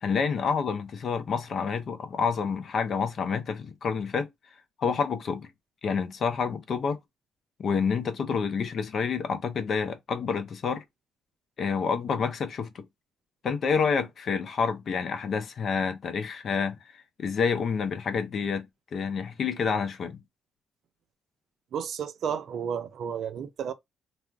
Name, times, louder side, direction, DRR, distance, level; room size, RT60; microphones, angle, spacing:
voice 1, 0.0-4.3 4.8-5.5 5.8-7.0 7.6-10.8 11.6-12.8 13.4-16.8 17.2-18.7 18.9-20.2, left 6 dB, 55° left, 0.5 m, -28 dB
voice 2, 21.7-23.7, right 7 dB, 65° right, 0.4 m, -32 dB
2.4 x 2.0 x 3.3 m
cardioid pair, 90°, 0 cm